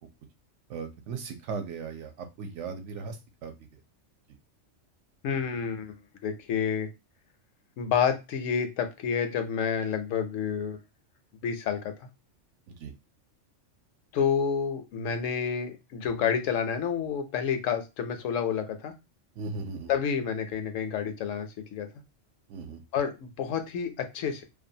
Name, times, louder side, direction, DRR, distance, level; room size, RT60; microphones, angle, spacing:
voice 1, 0.7-3.5 12.7-12.9 19.4-19.9 22.5-22.8, right 5 dB, 75° right, 7 dB, 0.9 m, -37 dB
voice 2, 5.2-5.9 6.2-6.9 7.8-10.8 11.4-12.1 14.1-18.9 19.9-21.9 22.9-24.4, left 7 dB, 85° left, 7 dB, 1.0 m, -29 dB
2.5 x 2.2 x 2.6 m, 0.25 s
omnidirectional pair, 1.3 m